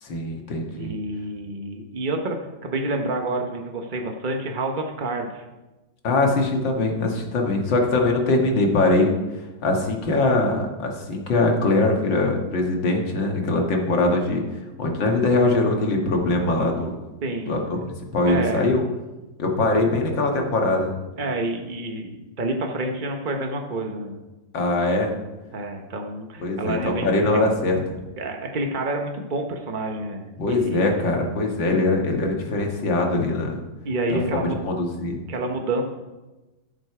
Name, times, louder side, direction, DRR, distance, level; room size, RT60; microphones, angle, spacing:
voice 1, 0.0-0.9 6.0-9.1 9.6-17.0 17.5-17.8 18.1-18.8 19.4-20.9 24.5-25.1 26.4-28.0 30.4-33.6 34.1-35.2, left 2 dB, 70° left, 1 dB, 2.4 m, -22 dB
voice 2, 0.7-2.4 2.6-5.4 17.2-17.6 18.3-18.6 21.2-24.2 25.5-27.4 28.2-31.0 33.8-34.6 35.3-35.8, right 2 dB, 40° right, 2 dB, 0.7 m, -28 dB
15.5 x 6.5 x 4.8 m, 1.1 s
omnidirectional pair, 2.1 m